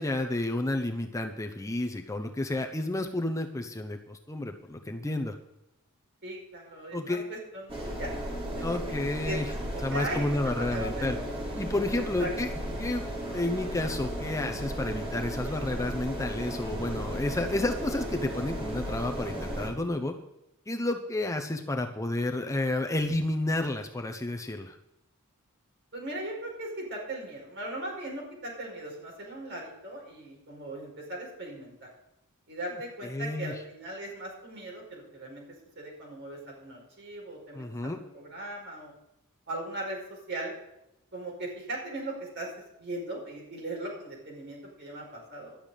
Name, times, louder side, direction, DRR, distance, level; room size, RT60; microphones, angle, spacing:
voice 1, 0.0-5.3 6.9-7.2 8.6-9.5 9.8-11.2 11.6-12.5 12.8-13.0 13.3-20.1 20.7-24.8 33.0-33.5 37.5-38.0, left 2 dB, 15° left, 4 dB, 0.7 m, -31 dB
voice 2, 6.2-8.1 8.5-8.8 9.2-9.4 9.7-11.3 11.9-12.3 25.9-31.9 32.5-38.9 39.5-40.6 41.1-42.5 42.8-45.6, right 1 dB, 55° right, -1 dB, 5.3 m, -38 dB
sound 1, 7.7-19.7, right 1 dB, 25° right, 3.6 m, -35 dB
11.5 x 6.9 x 9.1 m, 0.85 s
head